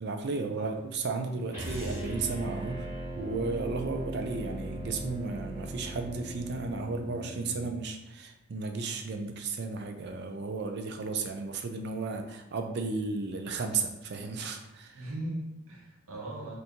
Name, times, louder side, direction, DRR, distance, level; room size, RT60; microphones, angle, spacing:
voice 1, 0.0-2.9 3.2-15.0, right 4 dB, 55° right, 5 dB, 0.4 m, -34 dB
sound 1, 1.5-7.7, equal, 15° right, 1.1 m, -38 dB
voice 2, 14.9-16.6, right 1 dB, 90° right, -1 dB, 0.9 m, -39 dB
2.8 x 2.6 x 3.5 m, 0.87 s
head